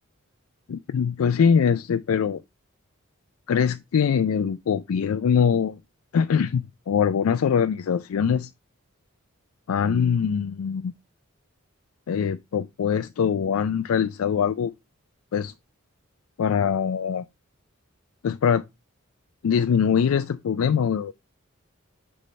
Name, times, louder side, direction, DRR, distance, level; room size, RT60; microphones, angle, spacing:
voice 1, 0.7-2.4 3.5-5.8 6.1-8.5 9.7-10.9 12.1-14.7 15.3-15.5 16.4-17.3 18.2-18.6 19.4-21.1, left 7 dB, 90° left, 0.4 m, -23 dB
9.1 x 3.5 x 4.2 m
head